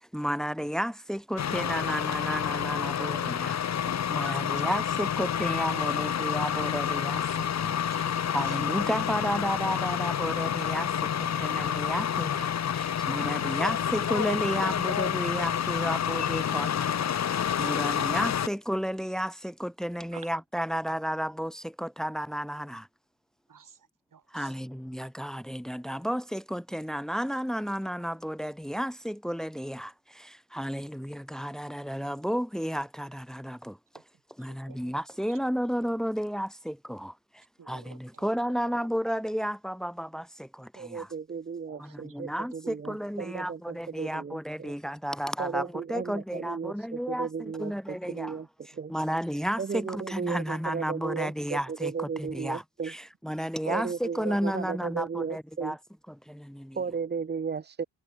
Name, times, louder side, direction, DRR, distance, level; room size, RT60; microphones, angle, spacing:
voice 1, 0.1-7.7 8.3-17.0 17.6-22.9 24.3-33.8 34.4-41.1 41.8-55.8 56.1-56.8, equal, ahead, 2.2 m, -33 dB
sound 1, 1.4-18.5, left 9 dB, 40° left, 0.8 m, -29 dB
voice 2, 4.1-4.7 7.3-7.4 7.8-8.1 8.4-8.6 20.1-20.4 23.5-24.6 33.9-34.0 34.4-34.9 35.3-35.4 37.6-38.7 41.7-42.2 48.7-48.8 53.9-54.0, right 7 dB, 50° right, 4.2 m, -53 dB
voice 3, 40.8-44.7 45.4-48.5 48.8-48.9 49.6-52.9 53.7-55.7 56.8-57.8, right 5 dB, 25° right, 0.7 m, -35 dB
cardioid pair, 75°, 40 cm